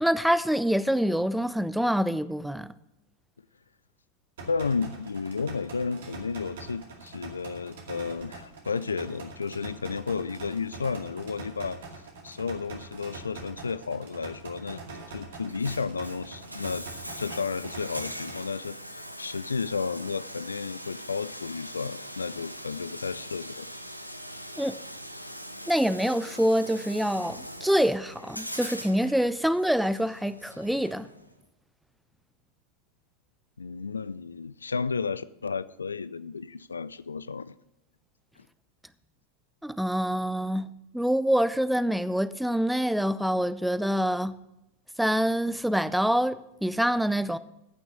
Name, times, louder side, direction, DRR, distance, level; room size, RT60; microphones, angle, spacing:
voice 1, 0.0-2.7 24.6-24.8 25.7-31.1 39.6-44.4 45.0-47.4, equal, ahead, 0.4 m, -26 dB
voice 2, 4.4-11.8 12.2-14.8 15.1-16.9 17.2-23.7 33.6-37.6, left 5 dB, 75° left, 0.3 m, -32 dB
sound 1, 4.4-18.4, right 3 dB, 60° right, 2.2 m, -44 dB
Bathtub (filling or washing), 15.4-31.3, equal, 90° right, 0.9 m, -42 dB
15.0 x 6.1 x 6.6 m
figure-of-eight pair, 90°, 0 cm